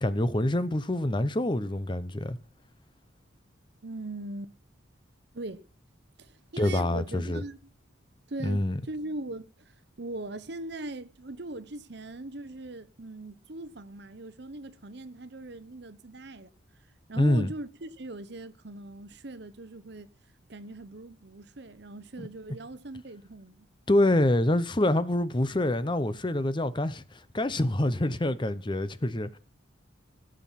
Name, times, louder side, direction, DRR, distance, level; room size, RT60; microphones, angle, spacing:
voice 1, 0.0-2.4 6.6-7.4 8.4-8.8 17.2-17.5 23.9-29.4, left 1 dB, 25° left, 0.7 m, -26 dB
voice 2, 3.8-4.5 5.3-5.6 6.2-7.7 8.3-16.5 17.1-20.1 20.5-23.7, right 2 dB, 55° right, 0.9 m, -40 dB
16.5 x 7.4 x 5.8 m
head